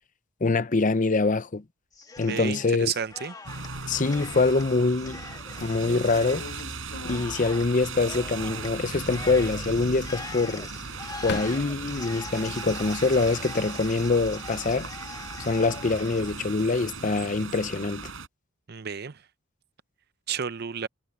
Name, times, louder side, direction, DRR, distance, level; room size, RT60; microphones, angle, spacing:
voice 1, 0.4-1.6 2.2-2.9 3.9-5.2 5.6-6.5 7.0-10.7 11.2-14.9 15.4-18.1, left 3 dB, 40° left, 0.7 m, -24 dB
Cheering, 1.9-2.8 3.1-17.5, left 3 dB, 20° left, 1.6 m, -43 dB
voice 2, 2.2-3.3 18.7-19.2 20.3-20.9, right 7 dB, 55° right, 0.7 m, -31 dB
sound 1, 3.5-18.3, right 4 dB, 75° right, 5.4 m, -38 dB
sound 2, 3.6-4.6 5.1-5.2 5.6-8.2 8.5-9.3 10.5-12.2 12.7-13.3, left 3 dB, 55° left, 2.4 m, -41 dB
head